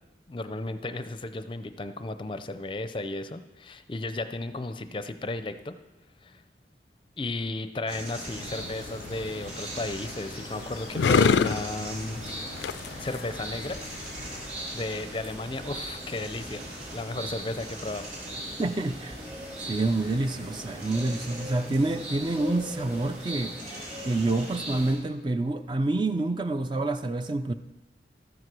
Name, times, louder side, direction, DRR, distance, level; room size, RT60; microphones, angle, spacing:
voice 1, 0.3-5.7 6.2-6.4 7.2-12.2 12.6-13.8 14.7-16.6 16.9-18.1, left 2 dB, 30° left, 10 dB, 0.5 m, -34 dB
sound 1, 7.9-24.9, right 1 dB, 45° right, 4.3 m, -39 dB
sound 2, 8.4-14.5, left 6 dB, 85° left, 0.4 m, -29 dB
voice 2, 18.6-19.2 19.7-23.6 24.1-27.5, right 2 dB, 25° right, 10 dB, 0.4 m, -27 dB
13.5 x 7.8 x 6.0 m, 1.1 s
head